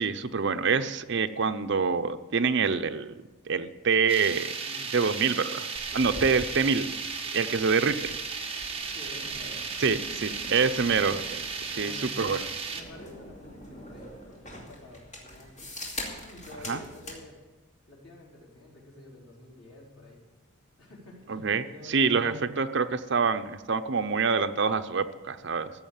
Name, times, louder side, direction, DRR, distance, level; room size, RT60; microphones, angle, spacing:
voice 1, 0.0-3.1 3.5-4.5 4.9-5.7 5.9-6.9 7.3-8.1 9.8-10.0 10.5-11.4 11.8-12.5 16.7-16.8 21.3-25.7, right 5 dB, 55° right, 9 dB, 0.6 m, -26 dB
sound 1, 4.1-12.8, right 5 dB, 25° right, 1.3 m, -35 dB
voice 2, 4.6-5.0 5.9-6.2 7.2-7.6 8.9-11.0 11.7-12.3 12.7-15.7 16.3-17.4 17.9-20.2 20.8-22.5, left 2 dB, 85° left, -3 dB, 4.2 m, -49 dB
sound 2, 5.7-17.2, left 1 dB, 30° left, 2.6 m, -44 dB
14.5 x 6.6 x 8.8 m, 1.2 s
head